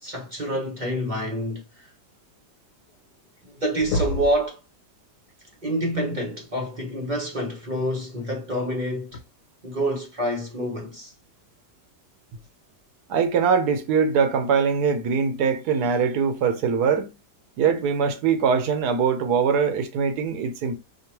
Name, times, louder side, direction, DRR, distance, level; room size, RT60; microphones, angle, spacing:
voice 1, 0.0-1.9 3.4-4.6 5.6-9.2 9.6-11.1, equal, 40° right, 0.7 m, -27 dB
sound 1, 2.9-3.0 3.3-3.5 3.8-4.5 6.2-6.3 8.1-8.2 9.1-9.2, left 2 dB, 80° left, 1.3 m, -28 dB
voice 2, 13.1-17.1 17.6-20.8, right 6 dB, 75° right, 1.2 m, -22 dB
5.2 x 2.3 x 3.0 m
omnidirectional pair, 1.8 m